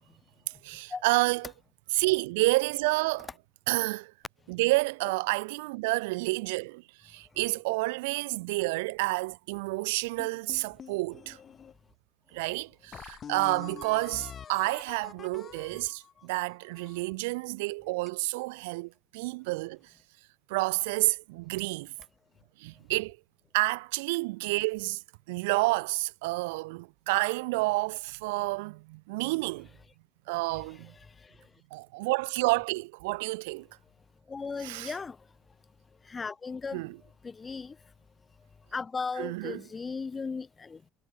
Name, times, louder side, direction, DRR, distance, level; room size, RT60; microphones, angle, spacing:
voice 1, 0.6-1.5 1.9-3.3 3.7-4.1 4.5-11.4 12.3-19.9 20.5-21.9 22.6-23.2 23.5-29.7 30.3-30.9 31.7-33.7 34.6-34.9 36.7-37.0 39.2-39.6, right 24 dB, 85° right, 0.6 m, -29 dB
sound 1, 10.2-11.7 12.3-12.4 12.9-17.1, left 8 dB, 40° left, 3.3 m, -46 dB
voice 2, 31.0-31.4 34.3-35.2 36.0-36.9 37.2-37.8 38.7-40.8, left 4 dB, 25° left, 0.4 m, -36 dB
supercardioid pair, 95°, 0 cm